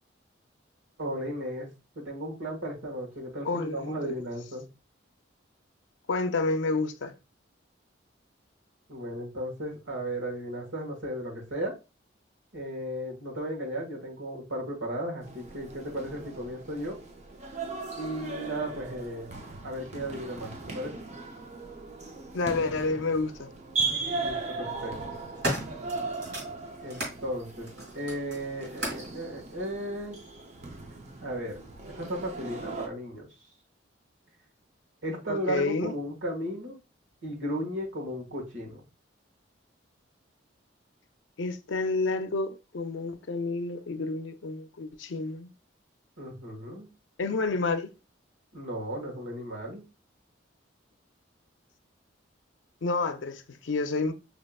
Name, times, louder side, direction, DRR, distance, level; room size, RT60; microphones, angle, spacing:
voice 1, 1.0-1.7 1.9-4.6 8.9-11.7 12.5-17.0 18.0-19.3 19.6-20.9 24.2-24.9 26.8-30.2 31.2-31.6 31.8-33.3 35.0-36.8 37.2-38.8 46.2-46.9 48.5-49.8, equal, 85° right, 1.4 m, -35 dB
voice 2, 3.4-4.1 6.1-7.1 22.3-23.5 35.3-35.9 41.4-45.5 47.2-47.9 52.8-54.1, left 3 dB, 70° left, 0.5 m, -29 dB
sound 1, 15.2-32.9, right 3 dB, 35° right, 0.6 m, -38 dB
sound 2, 22.8-22.9 24.0-24.4 24.9-27.2 27.6-29.1 30.0-30.1, equal, 55° right, 2.1 m, -36 dB
5.3 x 2.8 x 2.2 m
head